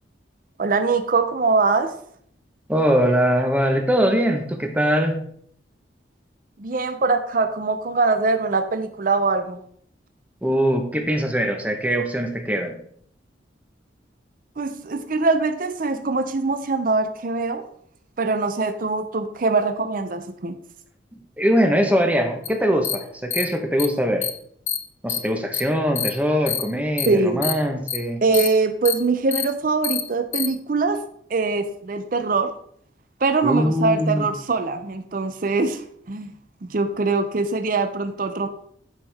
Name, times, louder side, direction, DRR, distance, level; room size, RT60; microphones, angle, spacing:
voice 1, 0.6-1.9 6.6-9.6 14.6-17.7 18.2-20.6 27.1-27.5 28.2-31.0 31.3-32.5 33.2-35.8 36.1-36.3 36.6-38.5, right 3 dB, 45° right, 8 dB, 0.5 m, -22 dB
voice 2, 2.7-5.2 10.4-12.8 21.4-24.3 25.0-28.2 33.4-34.3, equal, 10° right, 4 dB, 0.9 m, -22 dB
sound 1, 22.5-22.6 22.8-23.0 23.3-23.4 23.8-23.9 24.2-24.3 24.7-24.8 25.1-25.2 25.5-25.6 26.0-26.1 26.5-26.6 27.0-27.1 27.4-27.5 27.9-28.0 28.3-28.5 28.9-29.0 29.3-29.4 29.8-30.0 30.3-30.5, left 10 dB, 40° left, 0.7 m, -25 dB
9.9 x 5.5 x 3.4 m, 0.64 s
head